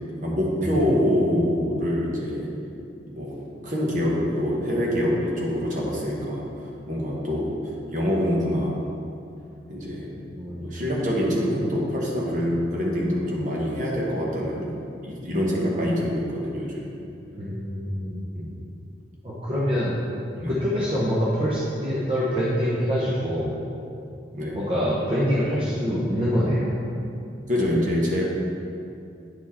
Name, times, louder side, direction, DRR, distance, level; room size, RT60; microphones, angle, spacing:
voice 1, 0.2-2.5 3.1-3.3 3.6-6.4 6.9-7.5 7.9-8.8 9.7-10.1 10.6-14.8 15.0-16.9 18.3-18.5 20.4-20.5 24.3-24.6 27.5-28.2, equal, 45° right, -4 dB, 1.4 m, -25 dB
voice 2, 10.3-10.8 17.4-18.2 19.2-20.0 20.5-23.6 24.5-26.7, equal, 30° right, -8 dB, 0.9 m, -25 dB
9.3 x 4.5 x 4.3 m, 2.6 s
head